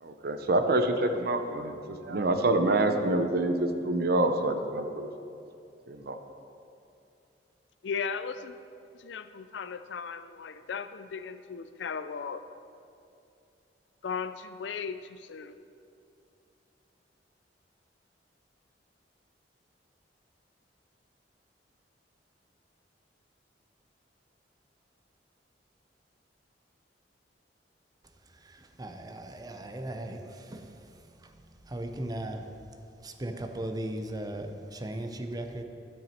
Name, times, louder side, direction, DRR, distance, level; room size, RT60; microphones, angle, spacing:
voice 1, 0.0-5.1 5.9-6.2, right 2 dB, 60° right, 7 dB, 0.7 m, -27 dB
voice 2, 7.8-8.6 9.0-12.4 14.0-15.5, left 6 dB, 75° left, 11 dB, 0.4 m, -36 dB
voice 3, 28.8-30.2 30.5-30.6 31.7-32.4 33.0-35.6, right 1 dB, 20° right, 5 dB, 0.6 m, -36 dB
12.0 x 6.0 x 4.4 m, 2.6 s
head